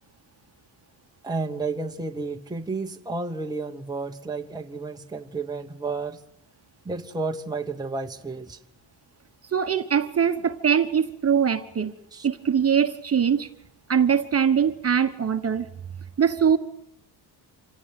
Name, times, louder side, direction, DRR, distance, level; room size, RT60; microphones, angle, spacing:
voice 1, 1.2-6.2 6.8-8.6 12.1-12.3, right 3 dB, 10° right, 1.2 m, -31 dB
voice 2, 9.5-11.9 12.2-13.5 13.9-15.7 16.2-16.6, right 7 dB, 30° right, 1.3 m, -22 dB
27.0 x 17.0 x 9.3 m
cardioid pair, 135°, 45 cm